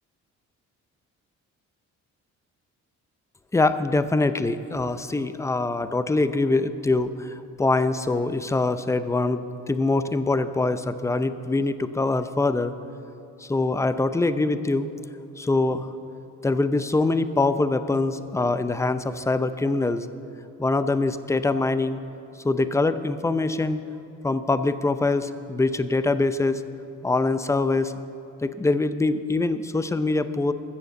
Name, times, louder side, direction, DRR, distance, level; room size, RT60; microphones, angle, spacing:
voice 1, 3.5-12.7 13.4-14.9 15.4-15.9 16.4-20.1 20.6-22.0 22.4-23.8 24.2-26.6 27.0-27.9 28.4-30.5, left 3 dB, 10° left, 11 dB, 0.5 m, -24 dB
14.0 x 6.9 x 7.7 m, 2.7 s
cardioid pair, 90°, 30 cm